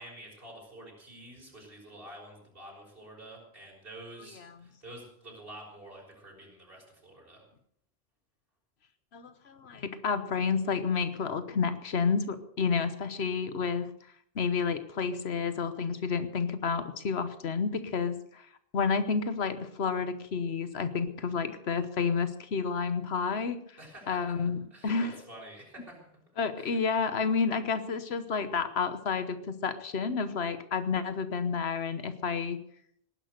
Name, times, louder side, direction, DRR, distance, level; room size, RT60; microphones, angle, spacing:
voice 1, 0.0-7.4 23.8-24.4 24.7-26.1 26.6-26.8, right 1 dB, 60° right, -2 dB, 6.1 m, -48 dB
voice 2, 9.1-13.9 14.3-18.5 18.7-23.6 24.1-25.2 26.4-32.6, left 5 dB, 90° left, 11 dB, 1.3 m, -30 dB
19.0 x 10.5 x 6.7 m, 0.67 s
omnidirectional pair, 1.0 m